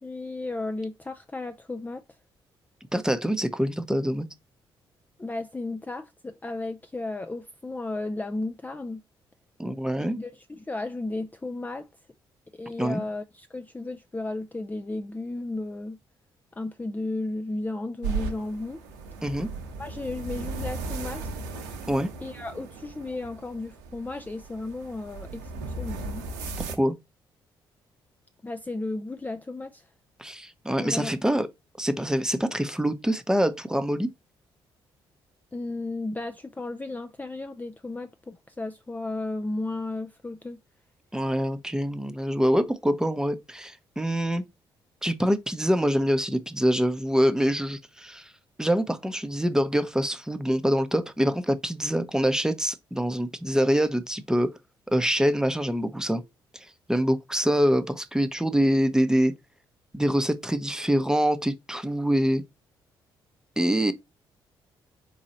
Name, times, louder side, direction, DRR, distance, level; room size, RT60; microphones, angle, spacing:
voice 1, 0.0-2.0 5.2-9.0 10.0-11.9 12.5-16.0 16.5-18.8 19.8-21.4 22.2-26.3 28.4-29.9 30.8-31.4 35.5-40.6, left 2 dB, 15° left, 0.4 m, -34 dB
voice 2, 2.9-4.3 9.6-10.2 12.8-13.0 19.2-19.5 21.9-22.1 26.8-27.0 30.2-31.5 31.8-34.1 41.1-44.4 45.0-48.3 48.6-54.5 54.9-56.2 56.9-59.3 59.9-62.4 63.6-63.9, equal, 5° right, 0.8 m, -25 dB
sound 1, 18.0-26.7, right 4 dB, 85° right, 0.8 m, -36 dB
4.0 x 2.6 x 4.2 m
hypercardioid pair, 45°, 12 cm